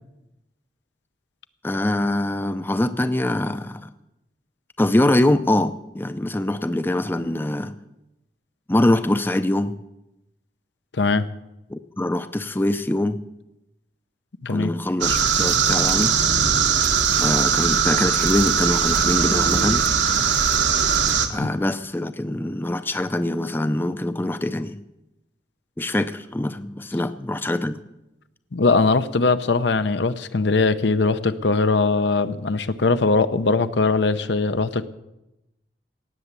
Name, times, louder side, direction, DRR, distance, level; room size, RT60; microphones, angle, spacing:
voice 1, 1.6-3.9 4.8-7.8 8.7-9.7 11.7-13.2 14.5-16.1 17.2-19.9 21.3-24.8 25.8-27.8, left 1 dB, 10° left, 11 dB, 0.5 m, -23 dB
sound 1, 15.0-21.3, right 7 dB, 80° right, 1.5 m, -20 dB
voice 2, 28.5-34.9, left 3 dB, 75° left, 12 dB, 0.7 m, -20 dB
18.0 x 7.1 x 8.2 m, 0.92 s
head